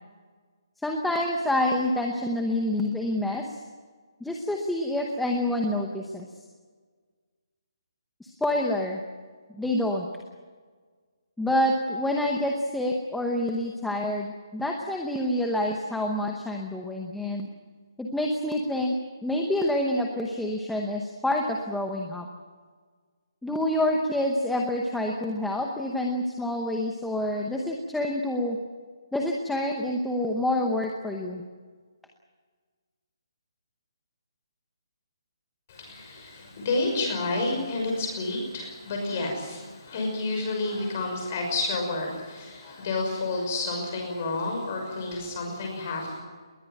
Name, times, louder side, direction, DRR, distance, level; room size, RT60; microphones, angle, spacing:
voice 1, 0.8-3.6 4.2-6.3 8.2-9.0 9.5-10.1 11.4-17.5 18.0-18.9 19.2-22.3 23.4-28.6 29.1-31.4, left 1 dB, ahead, 0 dB, 0.9 m, -27 dB
voice 2, 35.7-46.2, left 2 dB, 25° left, 2 dB, 6.0 m, -30 dB
21.0 x 19.0 x 9.2 m, 1.5 s
hypercardioid pair, 180°, 3 cm